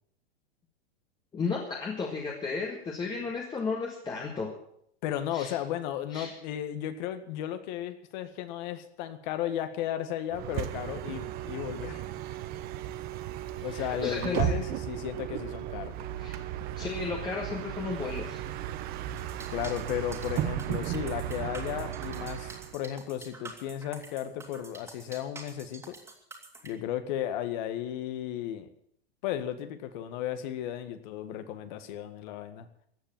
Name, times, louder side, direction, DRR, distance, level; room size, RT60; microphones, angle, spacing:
voice 1, 1.3-4.5 5.3-5.5 6.1-6.3 13.7-14.5 16.2-16.4 16.7-18.4, left 4 dB, 15° left, -1 dB, 1.8 m, -34 dB
voice 2, 5.0-12.0 13.6-16.0 19.5-25.9 26.6-28.7 29.2-32.7, left 11 dB, 45° left, 9 dB, 1.8 m, -34 dB
Bus, 10.3-22.7, right 12 dB, 30° right, 1.0 m, -35 dB
sound 1, 19.2-26.7, right 3 dB, 10° right, 2.6 m, -47 dB
15.0 x 8.9 x 9.0 m, 0.70 s
supercardioid pair, 145°, 31 cm